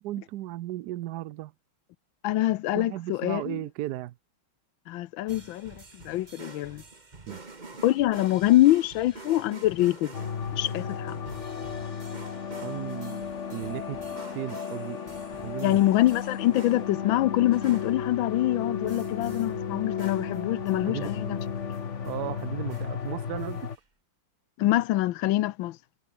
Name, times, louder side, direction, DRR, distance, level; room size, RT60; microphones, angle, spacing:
voice 1, 0.0-1.5 2.7-4.1 7.3-7.5 12.6-14.0 14.3-15.0 15.4-15.8 20.9-21.1 22.0-23.7, right 15 dB, 75° right, 0.9 m, -35 dB
voice 2, 2.2-3.6 4.9-6.8 7.8-10.1 10.5-11.2 15.6-21.4 24.6-25.8, left 15 dB, 75° left, 1.4 m, -25 dB
sound 1, 5.3-17.2 17.5-18.1 18.8-19.6 20.0-21.8 22.0-23.0 23.2-23.8, right 3 dB, 20° right, 1.8 m, -47 dB
sound 2, 10.1-23.8, left 7 dB, 40° left, 1.3 m, -34 dB
omnidirectional pair, 2.3 m